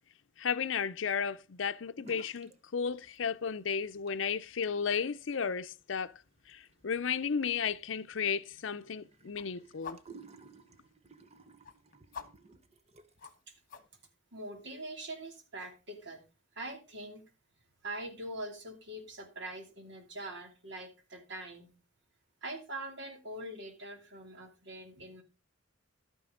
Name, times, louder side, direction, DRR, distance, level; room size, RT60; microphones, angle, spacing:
voice 1, 0.4-6.1 6.5-10.0, left 6 dB, 70° left, 0.6 m, -34 dB
sound 1, 2.0-2.6 2.9-3.5 3.9-13.4, right 4 dB, 35° right, 1.0 m, -58 dB
sound 2, 2.9-14.1, left 6 dB, 45° left, 1.3 m, -55 dB
voice 2, 14.3-16.3 16.5-17.2 17.8-21.7 22.4-25.2, right 1 dB, 60° right, 2.8 m, -43 dB
12.0 x 9.4 x 3.8 m
head